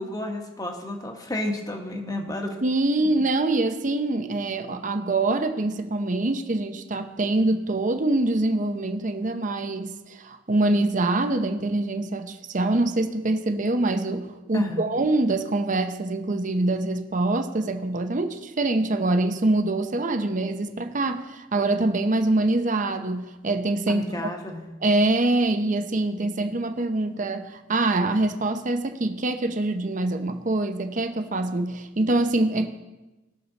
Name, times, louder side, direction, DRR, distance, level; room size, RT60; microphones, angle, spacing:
voice 1, 0.0-2.6 14.5-14.9 23.9-24.7, left 1 dB, 20° left, 2 dB, 1.4 m, -31 dB
voice 2, 2.6-24.0 24.8-32.7, right 2 dB, 45° right, 8 dB, 0.8 m, -24 dB
19.5 x 6.8 x 4.0 m, 1.1 s
head